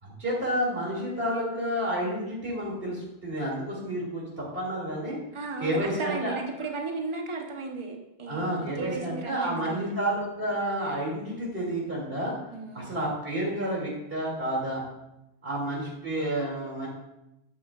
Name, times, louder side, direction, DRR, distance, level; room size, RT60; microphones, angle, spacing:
voice 1, 0.0-5.2 5.6-6.3 8.3-12.3 12.7-14.8 15.4-16.9, right 1 dB, 50° right, -4 dB, 2.9 m, -30 dB
voice 2, 5.3-10.0 12.5-12.9, right 3 dB, 25° right, 2 dB, 1.0 m, -35 dB
10.0 x 8.6 x 2.4 m, 0.89 s
omnidirectional pair, 1.2 m